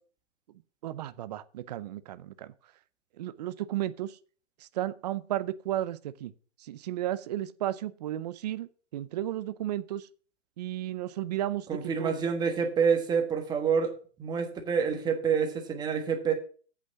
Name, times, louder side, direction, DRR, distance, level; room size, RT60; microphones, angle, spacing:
voice 1, 0.8-2.5 3.2-4.2 4.7-6.3 6.6-10.1 10.6-12.1, right 13 dB, 35° right, 0.6 m, -33 dB
voice 2, 11.7-13.9 14.2-16.3, right 6 dB, 10° right, 1.3 m, -27 dB
8.3 x 6.1 x 7.0 m
hypercardioid pair, 150°, 36 cm